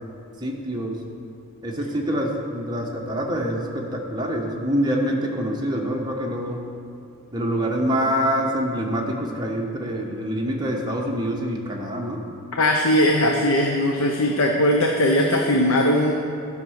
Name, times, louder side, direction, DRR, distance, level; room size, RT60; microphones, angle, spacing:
voice 1, 0.4-1.0 1.6-6.6 7.3-12.2, equal, 20° right, -1 dB, 1.1 m, -25 dB
voice 2, 12.6-16.1, left 1 dB, 65° left, 1 dB, 0.7 m, -19 dB
12.0 x 5.7 x 6.4 m, 2.5 s
head